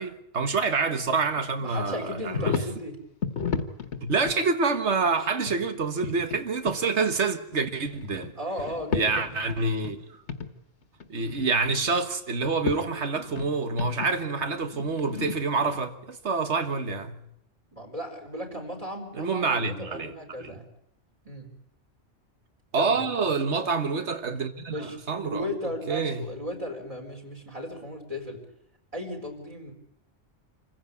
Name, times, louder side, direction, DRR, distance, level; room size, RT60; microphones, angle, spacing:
voice 1, 0.0-2.6 4.0-8.3 8.9-10.1 11.1-17.2 19.1-20.1 20.4-20.6 22.7-25.5 25.9-26.3, right 4 dB, 75° right, 1.8 m, -27 dB
voice 2, 1.6-3.0 8.4-9.3 17.7-20.7 21.2-21.5 22.7-23.1 24.7-25.0 25.2-28.4 28.9-29.7, left 1 dB, 30° right, 4.4 m, -36 dB
sound 1, 2.3-2.8 3.2-4.4 5.5-6.4 6.6-6.8 7.5-8.3 8.6-10.0 10.3-10.5 10.8-11.8 12.4-12.8 13.1-15.8, left 5 dB, 75° left, 1.7 m, -33 dB
27.0 x 15.5 x 8.5 m
omnidirectional pair, 1.2 m